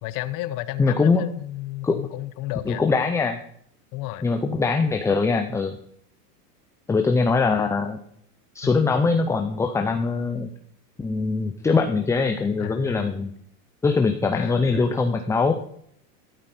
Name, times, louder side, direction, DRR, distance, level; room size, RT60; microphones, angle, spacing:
voice 1, 0.0-2.8 3.9-4.3 8.6-8.7 12.6-13.1 14.3-14.9, left 16 dB, 40° left, 14 dB, 1.1 m, -33 dB
voice 2, 0.8-1.3 1.8-2.0 2.7-3.4 4.2-5.8 6.9-8.0 8.5-10.5 11.0-13.3 13.8-15.5, left 4 dB, 5° left, 6 dB, 0.5 m, -22 dB
13.5 x 12.0 x 4.3 m, 0.66 s
supercardioid pair, 135°, 47 cm